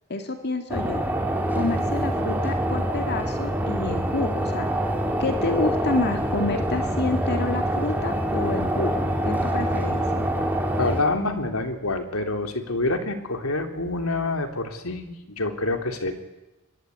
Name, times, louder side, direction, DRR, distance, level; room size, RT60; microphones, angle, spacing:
voice 1, 0.1-1.0 1.5-4.7 5.2-10.3, left 2 dB, 50° left, 6 dB, 2.1 m, -28 dB
sound 1, 0.7-11.0, right 1 dB, 10° right, 3.9 m, -25 dB
voice 2, 10.8-16.2, left 2 dB, 85° left, 6 dB, 3.3 m, -27 dB
25.5 x 21.5 x 9.4 m, 1.0 s
head